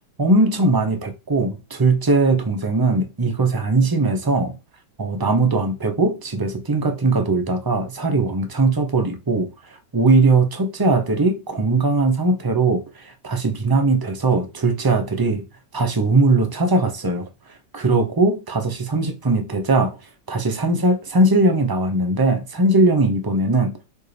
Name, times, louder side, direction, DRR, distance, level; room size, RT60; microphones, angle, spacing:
voice 1, 0.2-4.5 5.0-9.5 9.9-15.4 15.7-17.3 17.7-20.0 20.3-23.8, right 2 dB, 20° right, 0.6 m, -19 dB
6.5 x 4.6 x 3.4 m
omnidirectional pair, 1.9 m